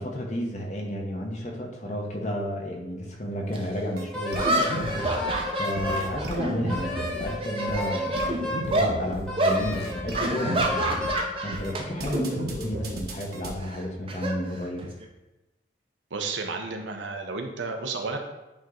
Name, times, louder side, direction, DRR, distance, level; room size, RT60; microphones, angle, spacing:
voice 1, 0.0-5.1 5.6-11.0 11.4-14.8, equal, 40° left, 1 dB, 1.0 m, -32 dB
sound 1, 3.5-3.6 4.3-7.0 7.3-8.3 8.7-8.9 9.4-9.6 10.1-11.8 12.1-12.4 13.6-15.1, right 1 dB, 30° right, 0.6 m, -28 dB
sound 2, 4.0-4.1 4.3-5.3 5.6-7.3 7.7-7.9 8.2-9.2 9.5-11.1 11.5-11.7 12.0-13.5, right 1 dB, 55° right, 1.0 m, -33 dB
Wind instrument woodwind instrument, 4.1-6.1 6.7-8.7 9.3-11.3, left 2 dB, 5° left, 0.9 m, -33 dB
voice 2, 16.1-18.2, right 4 dB, 90° right, 4 dB, 0.8 m, -32 dB
8.8 x 3.0 x 3.8 m, 1.0 s
head